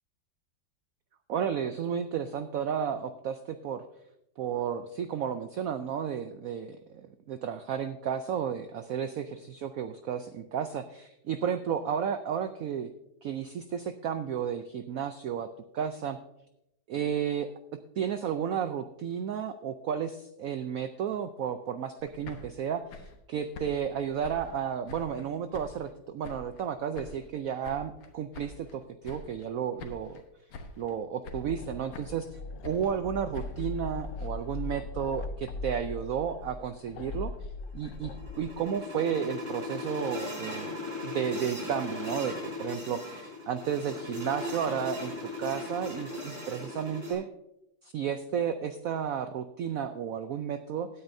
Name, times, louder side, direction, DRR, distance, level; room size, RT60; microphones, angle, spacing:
voice 1, 1.3-3.8 4.4-12.9 13.2-16.2 16.9-17.5 18.0-30.2 30.8-32.3 32.6-37.3 37.7-47.3 47.8-50.9, right 8 dB, 85° right, 10 dB, 0.7 m, -33 dB
sound 1, 22.0-25.3 25.5-26.7 27.0-28.8 29.0-29.5 29.8-30.3 30.5-31.0 31.2-32.3 32.6-34.8, left 3 dB, 90° left, 2.0 m, -46 dB
sound 2, 31.3-38.6, left 3 dB, 75° left, 0.7 m, -39 dB
sound 3, 37.7-47.1, left 2 dB, 30° right, 4.7 m, -38 dB
16.5 x 9.6 x 2.7 m, 0.85 s
omnidirectional pair, 2.1 m